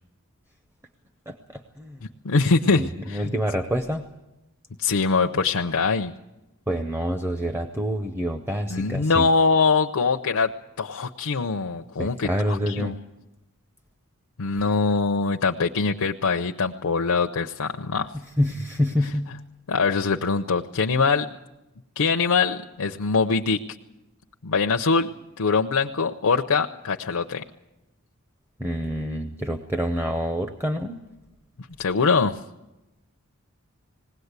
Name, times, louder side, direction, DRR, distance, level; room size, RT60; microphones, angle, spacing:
voice 1, 1.3-2.0 2.7-4.1 6.7-9.3 12.0-13.0 18.4-19.3 28.6-31.0, equal, 10° right, 7 dB, 0.7 m, -27 dB
voice 2, 2.2-3.3 4.8-6.1 8.7-10.5 10.8-13.0 14.4-18.1 19.7-21.3 22.0-23.6 24.4-25.1 25.4-27.4 31.8-32.4, left 4 dB, 75° left, 4 dB, 0.7 m, -23 dB
20.0 x 17.0 x 8.1 m, 1.0 s
head